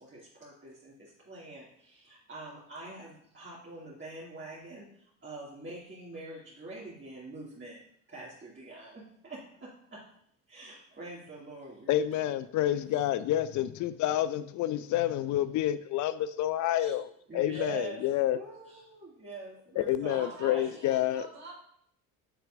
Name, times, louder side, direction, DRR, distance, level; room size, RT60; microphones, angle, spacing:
voice 1, 0.0-7.8 8.1-10.0 10.5-11.9 16.6-16.9 17.3-18.0 18.3-20.7, right 2 dB, 25° right, -7 dB, 2.4 m, -44 dB
voice 2, 11.9-18.4 19.8-21.2, left 12 dB, 45° left, 15 dB, 0.5 m, -29 dB
voice 3, 20.1-21.5, right 2 dB, 65° right, -9 dB, 2.9 m, -46 dB
6.9 x 6.8 x 2.5 m, 0.68 s
figure-of-eight pair, 55°, 44 cm